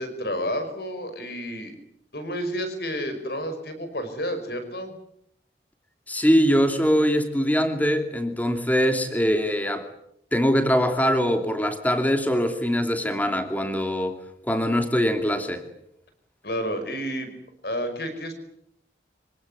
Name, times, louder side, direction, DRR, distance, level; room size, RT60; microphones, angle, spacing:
voice 1, 0.0-1.7 2.1-4.9 16.4-17.3 17.6-18.3, equal, 65° left, 9 dB, 5.3 m, -30 dB
voice 2, 6.1-9.9 10.3-14.2 14.5-15.7, equal, 10° left, 7 dB, 2.7 m, -22 dB
26.0 x 18.0 x 9.6 m, 0.76 s
head